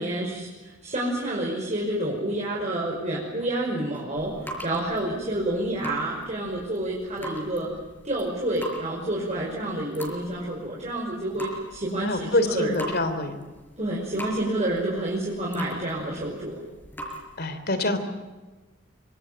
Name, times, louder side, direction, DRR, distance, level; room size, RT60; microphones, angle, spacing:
voice 1, 0.0-4.3 4.6-7.7 8.0-12.8 13.8-16.6, right 1 dB, 40° right, -4 dB, 5.7 m, -29 dB
sound 1, 3.9-17.4, right 1 dB, 10° left, 5.7 m, -41 dB
voice 2, 9.4-9.9 12.0-13.4 17.4-18.0, left 2 dB, 55° left, 10 dB, 3.3 m, -26 dB
25.5 x 24.5 x 7.7 m, 1.3 s
head